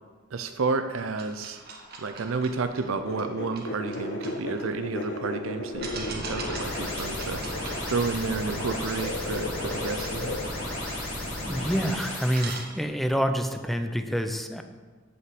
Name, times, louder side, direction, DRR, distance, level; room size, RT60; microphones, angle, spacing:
voice 1, 0.3-1.6 2.0-10.4, right 4 dB, 80° right, 8 dB, 0.5 m, -31 dB
sound 1, 1.2-5.1 5.8-11.4 11.8-11.9 12.1-13.2, right 3 dB, 50° right, 1.5 m, -42 dB
sound 2, 3.0-7.9 8.2-10.5, left 2 dB, 55° left, 1.0 m, -35 dB
sound 3, 5.7-12.5, left 1 dB, 90° left, 3.5 m, -34 dB
voice 2, 11.5-14.6, equal, ahead, 7 dB, 0.5 m, -27 dB
8.2 x 5.7 x 7.7 m, 1.4 s
head